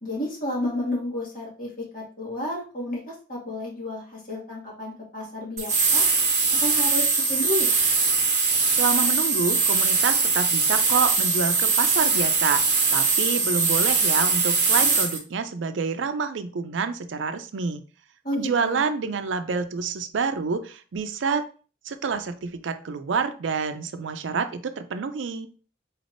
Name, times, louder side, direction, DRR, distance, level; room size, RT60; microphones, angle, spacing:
voice 1, 0.0-6.0 6.6-7.7 18.2-18.8, left 1 dB, 45° left, -4 dB, 1.9 m, -31 dB
sound 1, 5.6-15.2, right 4 dB, 40° right, 1.1 m, -21 dB
voice 2, 8.7-12.6 12.9-17.8 18.4-21.5 21.9-25.5, right 5 dB, 80° right, 9 dB, 0.4 m, -27 dB
4.2 x 3.3 x 2.6 m, 0.37 s
head